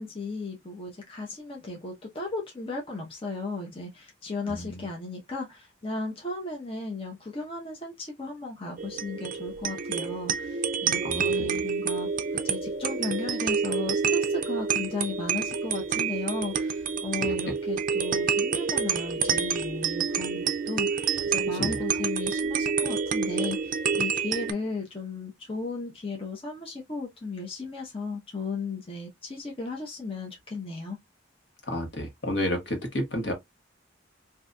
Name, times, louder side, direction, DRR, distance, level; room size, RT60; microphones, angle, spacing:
voice 1, 0.0-31.0, left 3 dB, 30° left, 0.7 m, -35 dB
voice 2, 4.5-4.9 11.0-11.5 21.6-21.8 31.7-33.3, left 1 dB, 60° left, 1.3 m, -31 dB
sound 1, 8.8-24.5, right 6 dB, 45° right, 0.4 m, -28 dB
3.9 x 2.7 x 2.2 m
head